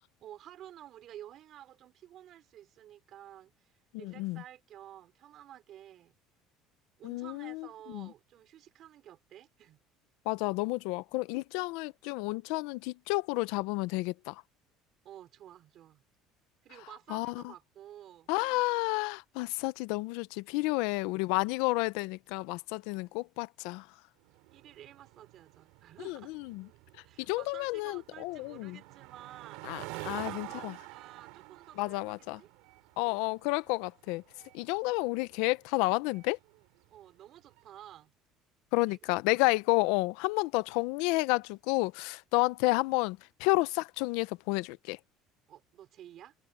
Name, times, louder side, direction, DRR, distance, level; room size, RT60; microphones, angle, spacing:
voice 1, 0.2-6.2 7.0-9.8 15.0-16.0 16.6-18.3 20.7-21.0 22.8-23.3 24.5-26.3 27.0-32.5 33.0-33.3 36.9-38.1 38.9-39.0 39.4-39.5 45.5-46.3, right 11 dB, 45° right, 3.6 m, -52 dB
voice 2, 3.9-4.4 7.0-7.7 7.9-8.1 10.3-14.4 17.1-17.4 18.3-23.8 26.0-26.6 27.3-28.8 29.7-30.7 31.8-32.4 33.0-34.2 34.5-36.4 38.7-45.0, left 23 dB, 80° left, 0.6 m, -31 dB
sound 1, 24.2-37.8, right 24 dB, 85° right, 3.5 m, -48 dB
cardioid pair, 155°, 0 cm